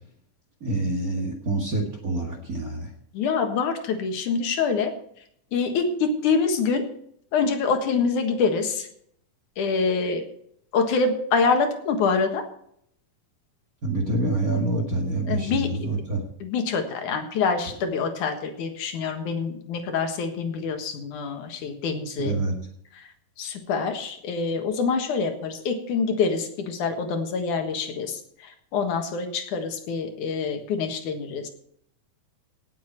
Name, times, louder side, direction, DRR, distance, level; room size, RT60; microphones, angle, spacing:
voice 1, 0.6-2.9 13.8-16.3 22.2-22.6, right 2 dB, 30° right, 2 dB, 1.9 m, -26 dB
voice 2, 3.1-4.9 5.5-6.9 7.3-8.9 9.6-10.2 10.7-12.4 15.3-15.7 16.4-22.4 23.4-28.2 28.7-31.5, left 5 dB, 75° left, 5 dB, 2.9 m, -25 dB
18.0 x 7.7 x 4.6 m, 0.68 s
omnidirectional pair, 3.7 m